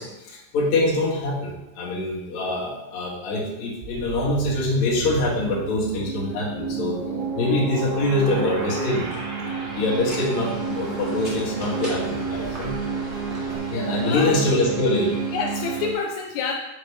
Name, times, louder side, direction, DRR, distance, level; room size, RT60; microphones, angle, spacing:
voice 1, 0.0-7.0 7.3-9.1 9.7-12.7 13.7-15.2, left 2 dB, 60° left, -3 dB, 2.5 m, -24 dB
sound 1, 3.8-15.9, right 5 dB, 70° right, 3.2 m, -31 dB
sound 2, 8.2-13.6, right 1 dB, 55° right, 0.7 m, -37 dB
voice 2, 14.0-14.4 15.3-16.6, left 5 dB, 80° left, 0 dB, 2.5 m, -28 dB
6.9 x 6.7 x 3.2 m, 0.96 s
omnidirectional pair, 4.2 m